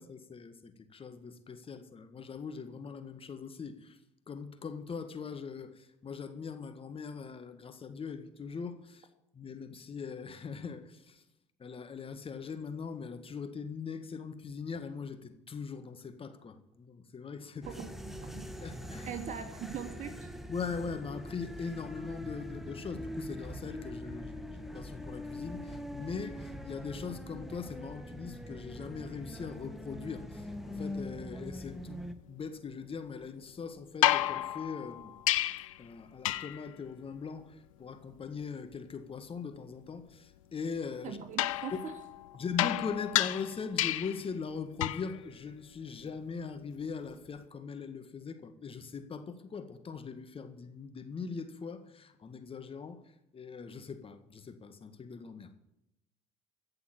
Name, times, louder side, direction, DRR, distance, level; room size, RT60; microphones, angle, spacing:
voice 1, 0.0-4.0 4.3-9.1 9.3-11.2 11.6-17.7 18.6-19.1 20.5-32.0 32.3-35.2 35.8-41.2 42.4-53.0 53.3-55.6, left 5 dB, 35° left, 9 dB, 1.7 m, -41 dB
sound 1, 17.6-32.1, left 1 dB, ahead, 1.7 m, -43 dB
voice 2, 17.8-18.5 19.0-20.3 41.0-41.9, right 8 dB, 45° right, 7 dB, 2.7 m, -41 dB
sound 2, 34.0-35.8 36.2-36.7 41.4-44.3 44.8-45.2 47.1-47.2, left 15 dB, 80° left, 0.6 m, -31 dB
16.0 x 6.9 x 9.0 m, 0.86 s
hypercardioid pair, 60°, 17 cm